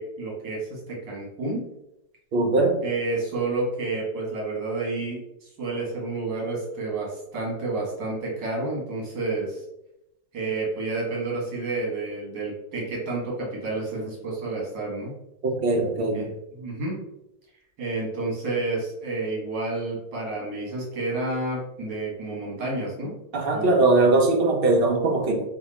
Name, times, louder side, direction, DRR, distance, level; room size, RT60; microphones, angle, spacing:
voice 1, 0.0-1.6 2.8-9.6 10.3-15.1 16.1-16.3 16.5-17.0 17.8-23.1 23.5-23.8, right 3 dB, 75° right, -4 dB, 2.2 m, -30 dB
voice 2, 2.3-2.8 15.4-16.3 23.3-25.4, right 2 dB, 60° right, 1 dB, 0.5 m, -21 dB
4.1 x 2.7 x 4.1 m, 0.86 s
omnidirectional pair, 1.9 m